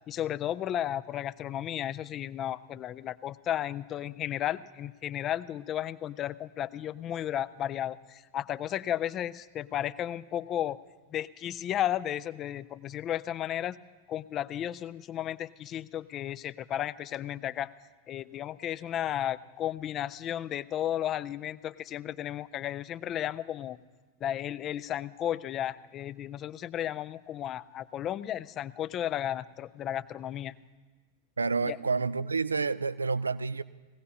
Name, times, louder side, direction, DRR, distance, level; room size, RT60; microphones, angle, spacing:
voice 1, 0.1-10.8 11.1-13.8 14.1-17.7 18.1-23.8 24.2-30.5 31.7-31.8, left 11 dB, 30° left, 17 dB, 0.4 m, -34 dB
voice 2, 31.4-33.6, right 4 dB, 75° right, 17 dB, 0.3 m, -29 dB
19.5 x 16.5 x 2.8 m, 1.3 s
figure-of-eight pair, 90°, 0 cm